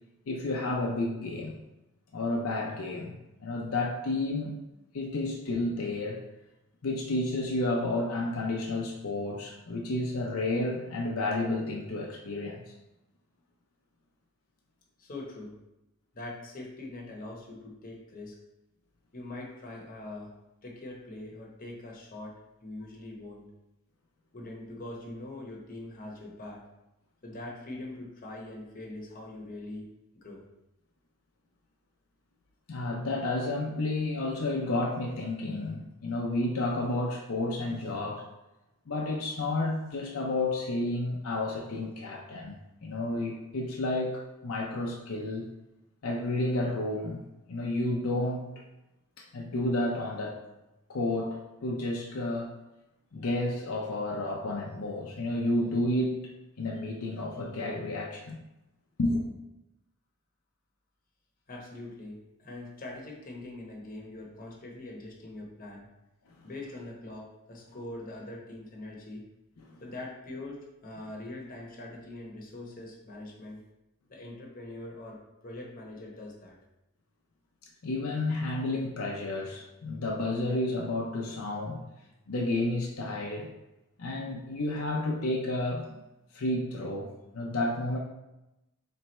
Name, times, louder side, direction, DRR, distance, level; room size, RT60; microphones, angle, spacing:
voice 1, 0.3-1.5 2.1-4.5 4.9-6.2 6.8-12.7 32.7-38.2 38.9-42.6 42.8-45.5 46.0-47.2 47.5-48.5 49.2-50.4 50.9-52.5 53.1-56.2 56.6-58.4 59.0-59.2 77.8-81.8 82.3-83.5 84.0-85.9 86.3-88.0, left 2 dB, 75° left, -2 dB, 0.6 m, -31 dB
voice 2, 15.0-15.5 16.1-18.3 19.1-20.3 20.6-22.4 22.6-23.4 24.3-26.6 27.2-29.9 30.1-30.4 61.5-65.9 66.4-69.2 69.8-73.6 74.1-76.5, left 2 dB, 40° left, -2 dB, 0.9 m, -42 dB
3.4 x 3.3 x 4.2 m, 0.95 s
head